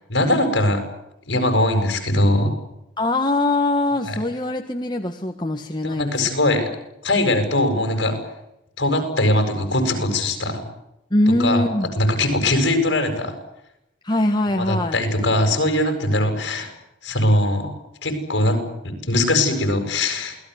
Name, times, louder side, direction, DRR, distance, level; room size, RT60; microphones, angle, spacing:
voice 1, 0.1-0.8 1.3-2.5 4.0-4.2 5.8-6.7 7.0-8.2 8.8-10.6 11.3-11.6 12.0-13.3 14.5-16.7 17.0-17.7 18.0-20.4, left 1 dB, 55° left, 6 dB, 7.9 m, -21 dB
voice 2, 3.0-6.1 11.1-11.9 14.0-15.0, left 1 dB, 20° left, 3 dB, 1.7 m, -22 dB
28.5 x 19.5 x 8.3 m, 0.86 s
head